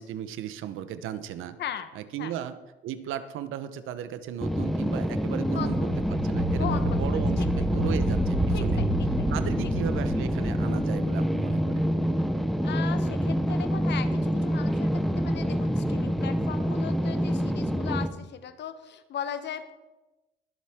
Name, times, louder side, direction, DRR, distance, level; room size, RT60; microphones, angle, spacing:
voice 1, 0.0-1.6 1.9-2.6 2.8-8.8 9.3-11.8, right 10 dB, 80° right, 12 dB, 1.0 m, -36 dB
sound 1, 4.4-18.1, equal, ahead, 0.8 m, -27 dB
sound 2, 5.3-11.7, right 1 dB, 30° right, 1.6 m, -31 dB
voice 2, 5.5-6.0 6.5-7.7 8.5-9.3 12.6-19.7, left 9 dB, 60° left, 11 dB, 1.0 m, -38 dB
22.0 x 7.5 x 3.7 m, 1.1 s
cardioid pair, 110°, 21 cm